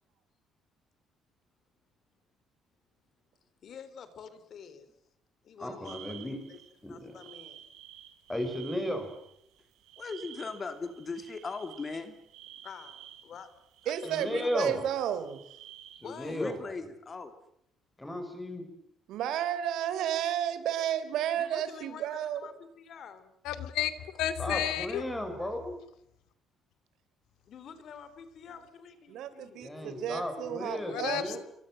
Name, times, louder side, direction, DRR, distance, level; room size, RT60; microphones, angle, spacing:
voice 1, 3.6-4.9 5.4-6.6 6.9-7.6 12.6-12.9 13.2-13.5 13.8-14.5 16.0-16.4 21.4-23.3 27.5-29.6, left 7 dB, 45° left, 12 dB, 3.6 m, -48 dB
voice 2, 5.6-6.4 6.8-7.1 8.3-9.1 14.0-14.8 16.0-16.6 18.0-18.6 24.4-25.7 29.6-31.4, left 1 dB, 5° left, 6 dB, 6.0 m, -34 dB
sound 1, 5.8-16.6, right 11 dB, 85° right, 4.6 m, -52 dB
voice 3, 10.0-12.2 16.3-17.3 29.6-31.4, left 4 dB, 25° left, 8 dB, 2.6 m, -40 dB
voice 4, 13.9-15.4 19.1-22.5 29.1-31.4, right 10 dB, 70° right, 13 dB, 3.7 m, -32 dB
voice 5, 23.4-25.0 30.8-31.4, left 11 dB, 85° left, 11 dB, 2.7 m, -32 dB
29.0 x 24.0 x 7.8 m, 0.75 s
cardioid pair, 170°, 0 cm